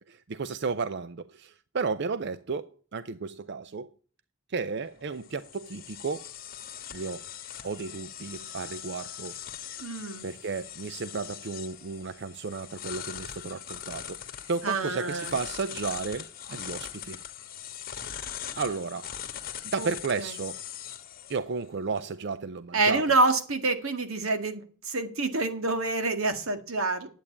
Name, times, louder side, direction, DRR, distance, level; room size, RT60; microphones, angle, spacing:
voice 1, 0.1-3.9 4.5-6.3 6.9-7.2 7.6-9.3 10.2-17.2 18.6-19.1 19.6-20.6 21.3-23.1, right 4 dB, 55° right, 0.5 m, -33 dB
sound 1, 4.8-22.0, left 10 dB, 45° left, 1.3 m, -41 dB
voice 2, 9.8-10.3 14.6-15.3 19.8-19.9 20.2-20.3 22.7-24.6 24.9-27.1, right 3 dB, 85° right, 1.9 m, -27 dB
11.0 x 8.3 x 8.5 m
head